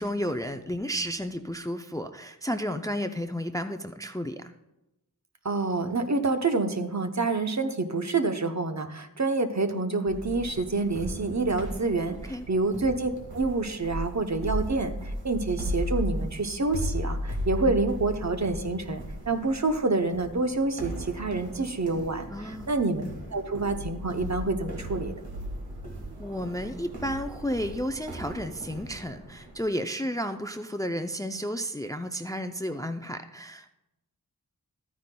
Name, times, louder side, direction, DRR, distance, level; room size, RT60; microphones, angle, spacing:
voice 1, 0.0-4.5 12.3-12.5 22.3-22.7 26.2-33.7, equal, 10° left, 7 dB, 0.4 m, -32 dB
voice 2, 5.4-23.0 23.3-25.2, right 3 dB, 50° right, 6 dB, 0.8 m, -27 dB
sound 1, 10.1-29.6, equal, 85° right, 1.7 m, -36 dB
12.5 x 9.3 x 2.2 m, 0.93 s
wide cardioid pair, 55°, 37 cm